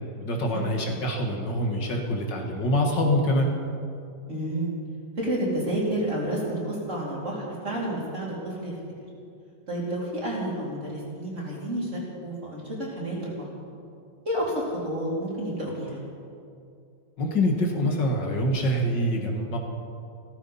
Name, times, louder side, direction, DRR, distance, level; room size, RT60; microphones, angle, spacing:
voice 1, 0.2-3.5 17.2-19.6, equal, 70° left, 1 dB, 2.4 m, -25 dB
voice 2, 4.3-4.7 5.2-8.7 9.7-13.5 14.3-16.0, right 1 dB, 40° right, -5 dB, 4.1 m, -30 dB
16.5 x 14.5 x 5.7 m, 2.5 s
omnidirectional pair, 2.0 m